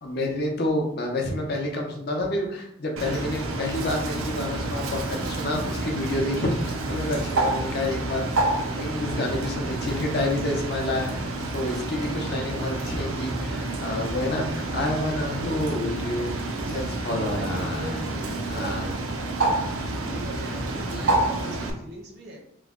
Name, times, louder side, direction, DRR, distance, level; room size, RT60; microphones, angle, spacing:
voice 1, 0.0-8.3 8.6-16.3 16.7-18.0 18.5-18.9, left 1 dB, 50° left, 1 dB, 0.6 m, -29 dB
Bird, 3.0-21.7, right 2 dB, 85° right, 0.5 m, -29 dB
voice 2, 17.1-19.1 19.6-22.4, right 1 dB, 50° right, 0 dB, 0.8 m, -39 dB
3.0 x 2.2 x 3.6 m, 0.75 s
head